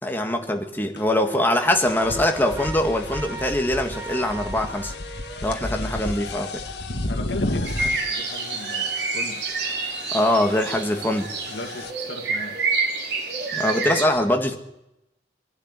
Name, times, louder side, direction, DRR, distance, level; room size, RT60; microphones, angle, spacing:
voice 1, 0.0-4.9 5.4-6.6 10.1-11.3 13.5-14.6, left 1 dB, 10° left, 4 dB, 1.8 m, -23 dB
sound 1, 1.0-1.1 1.6-11.9, left 2 dB, 70° left, 1.7 m, -33 dB
Wind instrument woodwind instrument, 1.6-5.6, right 2 dB, 15° right, 2.3 m, -39 dB
voice 2, 7.1-9.4 11.5-12.6, left 2 dB, 90° left, 2 dB, 1.9 m, -37 dB
sound 2, 7.6-14.0, right 4 dB, 65° right, 3.4 m, -28 dB
23.0 x 11.5 x 9.7 m, 0.87 s
head